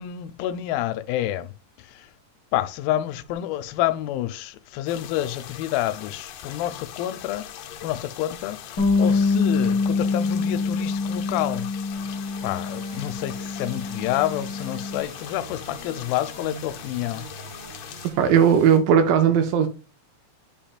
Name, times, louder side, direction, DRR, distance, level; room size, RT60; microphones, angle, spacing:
voice 1, 0.0-2.1 2.5-11.7 12.4-17.2, left 13 dB, 90° left, 2.3 m, -28 dB
sound 1, 4.9-18.1, left 10 dB, 75° left, 2.1 m, -41 dB
Bass guitar, 8.8-15.0, left 4 dB, 45° left, 1.6 m, -25 dB
sound 2, 11.9-18.8, right 4 dB, 45° right, 1.0 m, -44 dB
voice 2, 18.2-19.7, right 7 dB, 80° right, 2.3 m, -17 dB
8.8 x 5.5 x 2.4 m
omnidirectional pair, 4.0 m